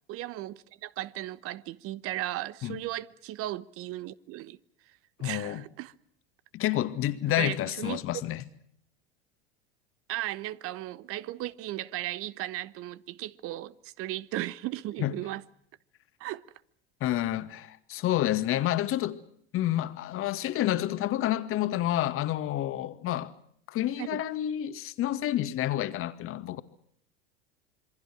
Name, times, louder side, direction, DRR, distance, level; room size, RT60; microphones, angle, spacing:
voice 1, 0.1-4.6 5.2-5.9 7.4-8.0 10.1-15.4 16.2-16.4 24.0-24.2, right 15 dB, 50° right, 1.1 m, -36 dB
voice 2, 5.2-5.6 6.5-8.4 15.0-15.1 17.0-19.2 19.5-23.3 23.7-26.6, left 13 dB, 45° left, 2.1 m, -29 dB
27.5 x 23.5 x 6.1 m
hypercardioid pair, 85°, 30 cm